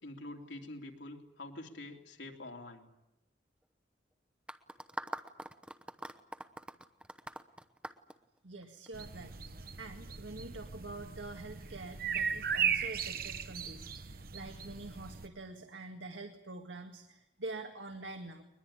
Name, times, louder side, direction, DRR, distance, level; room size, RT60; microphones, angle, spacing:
voice 1, 0.0-2.9, left 2 dB, 75° left, 3 dB, 3.2 m, -46 dB
sound 1, 4.5-8.9, right 1 dB, 5° right, 0.9 m, -43 dB
voice 2, 8.4-9.4 9.8-18.4, right 2 dB, 85° right, 5 dB, 2.0 m, -46 dB
sound 2, 8.9-15.3, right 7 dB, 50° right, 1.1 m, -37 dB
21.5 x 21.5 x 10.0 m, 0.90 s
head